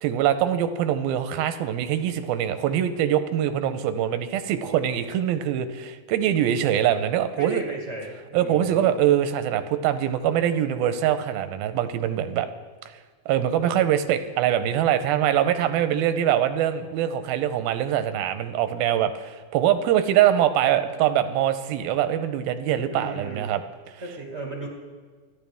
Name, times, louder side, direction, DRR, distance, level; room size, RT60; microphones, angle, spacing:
voice 1, 0.0-7.6 8.3-12.5 13.3-23.6, right 10 dB, 85° right, 10 dB, 2.6 m, -23 dB
voice 2, 7.4-8.9 22.9-23.5 24.0-24.7, right 2 dB, 30° right, -1 dB, 1.1 m, -35 dB
29.0 x 11.0 x 3.5 m, 1.5 s
omnidirectional pair, 4.3 m